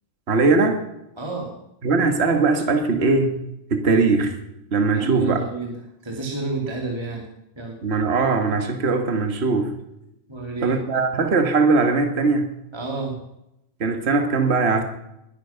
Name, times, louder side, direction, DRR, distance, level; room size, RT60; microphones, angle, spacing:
voice 1, 0.3-0.8 1.8-3.4 3.7-4.4 4.7-5.4 7.8-9.7 10.6-12.5 13.8-14.8, right 3 dB, 50° right, 6 dB, 0.7 m, -20 dB
voice 2, 1.2-1.5 4.9-7.3 7.6-7.8 10.3-10.8 12.7-13.2, right 3 dB, 10° right, 0 dB, 2.0 m, -29 dB
21.0 x 11.0 x 5.9 m, 0.85 s
omnidirectional pair, 4.2 m